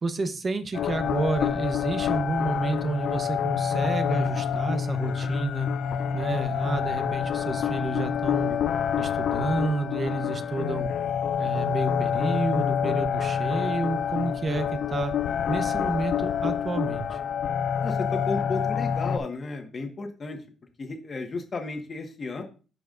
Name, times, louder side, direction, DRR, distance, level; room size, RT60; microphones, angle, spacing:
voice 1, 0.0-5.7 6.1-8.6 9.0-10.9 11.4-15.1 15.5-17.2, right 3 dB, 35° right, 9 dB, 1.0 m, -30 dB
sound 1, 0.7-19.2, left 8 dB, 75° left, 0.5 m, -27 dB
voice 2, 17.8-20.4 20.8-22.4, left 3 dB, 40° left, 3 dB, 1.5 m, -33 dB
13.0 x 4.8 x 2.6 m, 0.34 s
cardioid pair, 90°, 0 cm